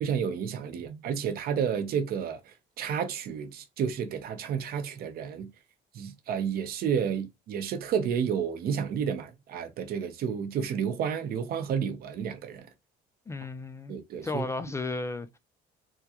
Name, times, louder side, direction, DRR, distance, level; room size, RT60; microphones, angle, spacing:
voice 1, 0.0-5.5 5.9-12.7 13.9-14.5, right 7 dB, 65° right, 0.7 m, -31 dB
voice 2, 13.3-13.9 14.2-15.4, left 3 dB, 15° left, 0.4 m, -34 dB
3.6 x 2.2 x 2.8 m
cardioid pair, 110°, 17 cm